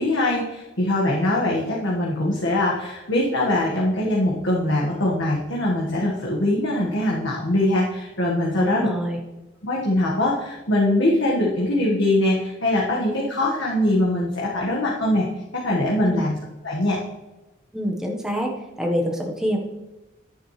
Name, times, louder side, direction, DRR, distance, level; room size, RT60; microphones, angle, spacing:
voice 1, 0.0-8.9 9.6-15.3 15.5-16.4 16.6-17.0, left 1 dB, 80° left, -4 dB, 1.7 m, -22 dB
voice 2, 8.6-9.2 16.0-16.2 17.7-19.6, equal, 5° right, 0 dB, 1.2 m, -26 dB
10.0 x 10.0 x 3.3 m, 1.1 s
head